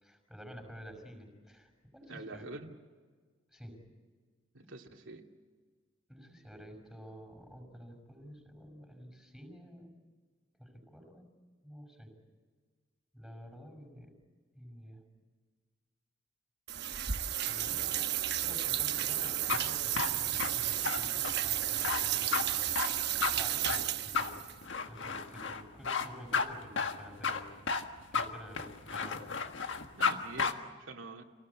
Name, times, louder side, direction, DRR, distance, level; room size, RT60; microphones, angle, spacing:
voice 1, 0.0-2.5 3.5-3.8 6.1-9.9 10.6-11.3 11.6-12.1 13.1-14.1 14.5-15.0 17.5-22.6 23.4-24.4 24.8-27.5 28.1-29.3, equal, ahead, 3 dB, 6.0 m, -50 dB
voice 2, 2.1-2.8 4.5-5.3 17.7-18.1 18.5-18.9 29.9-31.2, right 2 dB, 90° right, 2 dB, 2.4 m, -47 dB
sound 1, 16.7-24.5, right 12 dB, 60° right, 1.0 m, -32 dB
sound 2, 19.2-30.1 30.4-30.5, left 5 dB, 70° left, 1.6 m, -33 dB
28.0 x 18.5 x 8.5 m, 1.5 s
head